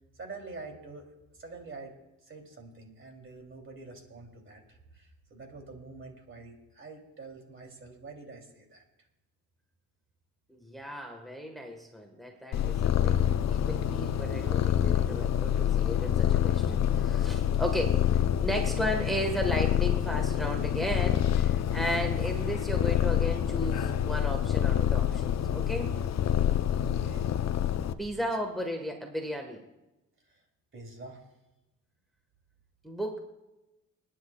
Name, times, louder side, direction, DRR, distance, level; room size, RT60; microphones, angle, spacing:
voice 1, 0.1-1.9 2.2-8.8 26.8-27.3 28.1-28.3 30.3-30.4 30.7-31.3, right 3 dB, 35° right, 2 dB, 3.0 m, -46 dB
voice 2, 10.5-25.9 28.0-29.6 32.8-33.2, equal, ahead, 2 dB, 1.5 m, -35 dB
Purr, 12.5-27.9, left 10 dB, 50° left, 0.7 m, -27 dB
29.0 x 10.0 x 2.4 m, 0.98 s
cardioid pair, 105°, 34 cm